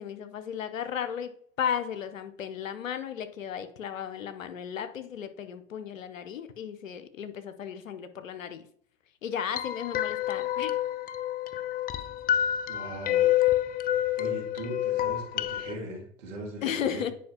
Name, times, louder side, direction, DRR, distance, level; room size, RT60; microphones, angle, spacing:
voice 1, 0.0-8.7 9.2-10.7 16.6-17.1, left 8 dB, 85° left, 11 dB, 0.7 m, -34 dB
sound 1, 9.5-15.7, left 12 dB, 25° left, 0.4 m, -28 dB
voice 2, 12.7-13.4 14.2-17.1, right 1 dB, 75° right, 0 dB, 2.1 m, -39 dB
9.3 x 4.8 x 2.9 m, 0.64 s
hypercardioid pair, 80°, 38 cm